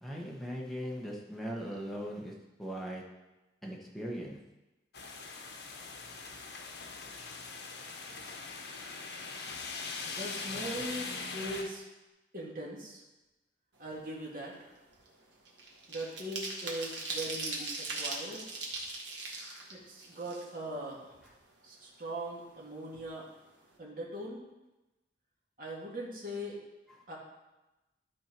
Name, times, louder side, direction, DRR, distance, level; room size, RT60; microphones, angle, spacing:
voice 1, 0.0-3.0 3.6-4.4, equal, ahead, -3 dB, 1.2 m, -39 dB
sound 1, 4.9-11.6, left 4 dB, 70° left, 1.1 m, -41 dB
voice 2, 10.0-11.8 12.3-13.0 13.8-14.7 15.9-18.5 19.7-21.1 21.6-23.3 23.8-24.4 25.6-26.6 27.1-27.2, right 1 dB, 50° right, -4 dB, 1.9 m, -40 dB
sound 2, 13.9-14.1 14.4-20.9 21.2-21.3 21.6-22.6 22.9-23.1 23.4-23.7, right 3 dB, 90° right, 1.6 m, -40 dB
12.0 x 4.5 x 4.5 m, 1.0 s
head